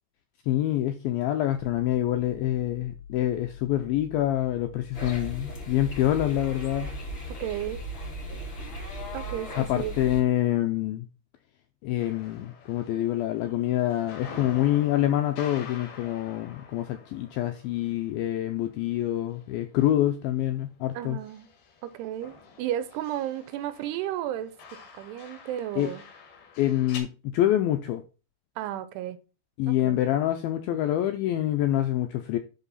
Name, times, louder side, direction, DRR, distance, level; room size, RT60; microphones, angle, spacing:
voice 1, 0.5-6.9 9.6-11.1 11.8-21.2 25.8-25.9 26.6-28.0 29.6-32.4, left 13 dB, 85° left, 2.1 m, -26 dB
sound 1, 1.6-7.8, left 8 dB, 50° left, 3.6 m, -45 dB
sound 2, 4.9-10.2, equal, 30° left, 3.5 m, -37 dB
voice 2, 7.4-7.8 9.1-10.0 20.9-21.5 21.8-24.5 24.9-26.0 28.6-29.2 29.7-30.0, right 12 dB, 85° right, 2.7 m, -33 dB
sound 3, 12.0-20.0 20.3-27.0, left 5 dB, 70° left, 3.8 m, -47 dB
11.0 x 4.0 x 4.0 m
omnidirectional pair, 4.9 m